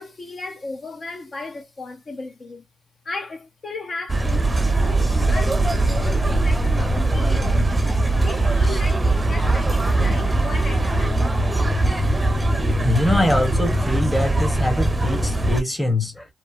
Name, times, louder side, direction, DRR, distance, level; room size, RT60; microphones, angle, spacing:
voice 1, 0.0-2.6 3.0-7.9 8.2-11.3, left 3 dB, 45° left, 0.6 m, -35 dB
sound 1, 4.1-15.6, right 2 dB, 20° right, 0.6 m, -20 dB
voice 2, 12.8-16.3, left 1 dB, 15° left, 0.9 m, -23 dB
3.0 x 2.0 x 2.4 m
cardioid pair, 65°, 0 cm